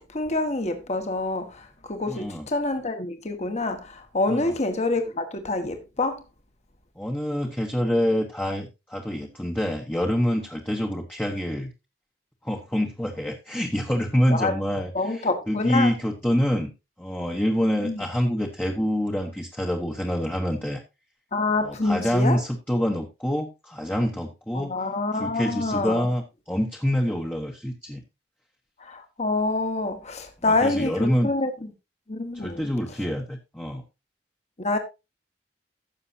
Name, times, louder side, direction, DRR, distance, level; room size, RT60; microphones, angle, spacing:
voice 1, 0.1-6.2 14.3-14.5 14.9-15.9 17.8-18.0 21.3-22.4 24.5-26.1 28.8-31.5 32.1-32.6 34.6-34.8, left 2 dB, 40° left, 1.6 m, -26 dB
voice 2, 2.1-2.5 4.3-4.5 7.0-11.7 12.4-16.7 17.0-20.8 21.6-24.7 25.1-28.0 30.5-31.3 32.3-33.8, equal, 10° left, 1.2 m, -26 dB
15.5 x 6.8 x 2.8 m
head